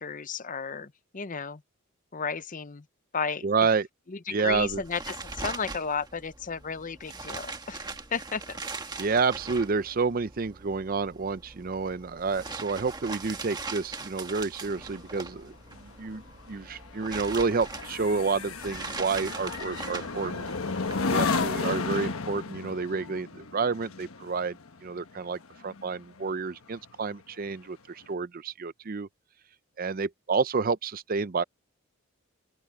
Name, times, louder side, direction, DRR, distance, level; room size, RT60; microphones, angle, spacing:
voice 1, 0.0-1.6 2.1-2.8 3.1-3.4 4.1-8.6, left 5 dB, 40° left, 0.7 m, -34 dB
voice 2, 3.4-3.9 4.3-4.8 9.0-20.5 21.1-24.6 24.8-29.1 29.8-31.4, right 4 dB, 40° right, 0.5 m, -29 dB
sound 1, 4.5-21.8, right 3 dB, 20° right, 1.4 m, -41 dB
sound 2, 14.7-26.4 26.8-27.1, left 4 dB, 75° left, 1.2 m, -33 dB
open air
head